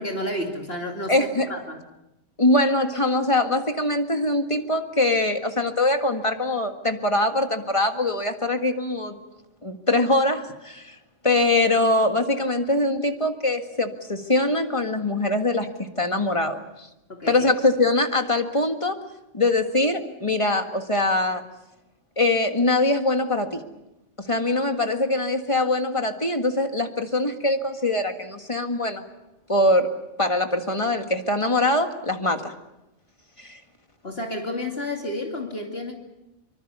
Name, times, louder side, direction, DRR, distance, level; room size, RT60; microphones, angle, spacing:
voice 1, 0.0-1.8 17.1-17.4 34.0-36.0, left 1 dB, 55° left, 2 dB, 2.8 m, -31 dB
voice 2, 1.1-1.5 2.4-9.2 9.6-11.0 11.2-16.9 17.3-19.0 19.3-21.4 22.2-23.6 24.2-29.0 29.5-29.9 30.2-32.5 33.4-33.6, left 2 dB, 25° left, 5 dB, 1.9 m, -23 dB
24.5 x 24.5 x 6.9 m, 0.90 s
omnidirectional pair, 1.3 m